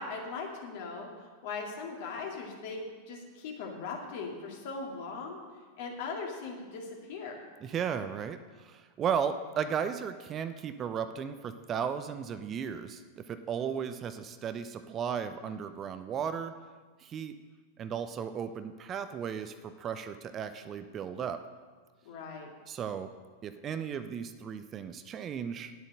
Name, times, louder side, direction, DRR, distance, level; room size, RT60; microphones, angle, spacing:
voice 1, 0.0-5.4 5.8-7.4 22.1-22.5, left 4 dB, 50° left, 0 dB, 2.2 m, -39 dB
voice 2, 7.6-16.5 17.0-17.4 17.8-21.4 22.7-23.1 23.4-25.9, right 7 dB, 30° right, 10 dB, 0.5 m, -35 dB
10.0 x 7.7 x 6.5 m, 1.5 s
figure-of-eight pair, 90°, 0 cm